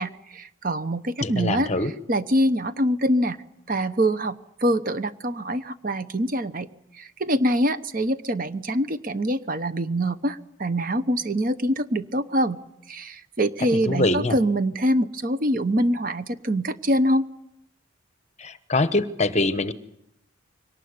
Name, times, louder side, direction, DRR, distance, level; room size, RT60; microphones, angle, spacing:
voice 1, 0.0-1.7 2.1-3.4 3.7-6.7 7.0-12.6 12.9-17.3, equal, 40° right, 12 dB, 0.9 m, -24 dB
voice 2, 1.2-1.9 13.9-14.4 18.4-19.7, left 2 dB, 35° left, 12 dB, 1.0 m, -23 dB
23.0 x 19.0 x 9.5 m, 0.84 s
head